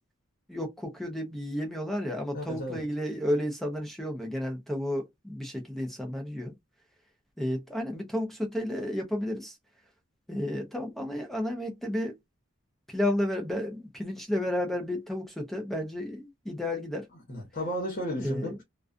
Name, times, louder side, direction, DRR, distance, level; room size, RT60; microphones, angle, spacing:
voice 1, 0.5-6.5 7.4-9.6 10.3-12.2 12.9-17.1 18.2-18.6, left 1 dB, ahead, 0.5 m, -32 dB
voice 2, 2.3-2.8 17.3-18.6, equal, 40° left, 1.0 m, -33 dB
2.3 x 2.3 x 2.4 m
head